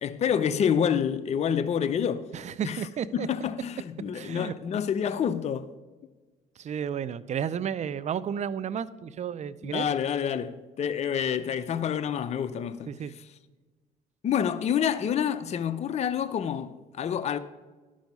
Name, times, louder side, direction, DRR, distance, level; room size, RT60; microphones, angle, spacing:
voice 1, 0.0-2.3 2.6-5.7 9.6-13.3 14.2-17.4, left 8 dB, 40° left, 0.5 m, -28 dB
voice 2, 2.3-3.3 4.1-4.5 6.6-9.9 12.9-13.1, right 8 dB, 45° right, 0.5 m, -32 dB
11.5 x 6.3 x 5.3 m
supercardioid pair, 85°, 17 cm